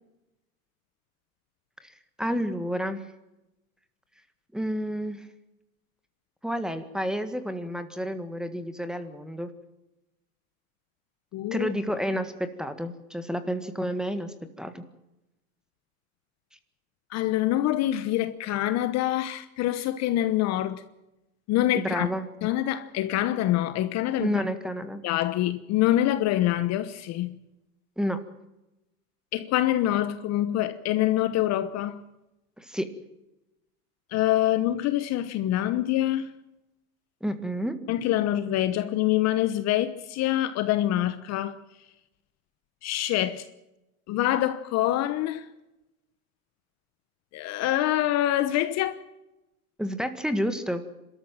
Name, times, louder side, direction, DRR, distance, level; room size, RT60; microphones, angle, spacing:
voice 1, 2.2-3.0 4.5-5.3 6.4-9.5 11.5-14.8 21.7-22.3 24.2-25.0 28.0-28.2 32.6-32.9 37.2-37.8 49.8-50.8, equal, ahead, 1.7 m, -30 dB
voice 2, 11.3-11.7 17.1-20.8 21.5-22.1 22.4-24.5 25.0-27.4 29.3-32.0 34.1-36.3 37.9-41.6 42.8-43.4 44.1-45.5 47.3-49.0, left 13 dB, 35° left, 1.1 m, -25 dB
26.0 x 13.5 x 8.9 m
supercardioid pair, 135°, 45 cm